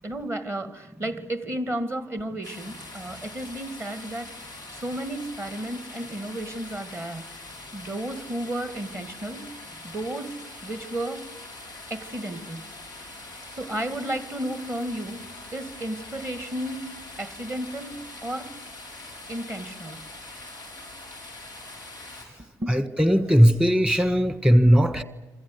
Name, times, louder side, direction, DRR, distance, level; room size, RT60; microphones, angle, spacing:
voice 1, 0.0-7.2 7.7-9.4 9.8-10.4 10.6-11.3 11.9-12.6 13.5-15.2 15.5-16.9 17.2-18.5 19.3-20.1 22.4-22.8, right 1 dB, 25° right, 2.2 m, -33 dB
sound 1, 2.4-22.2, left 2 dB, 90° right, 5.4 m, -43 dB
voice 2, 22.7-25.0, equal, 10° right, 1.6 m, -18 dB
27.5 x 27.0 x 8.1 m
figure-of-eight pair, 45°, 10 cm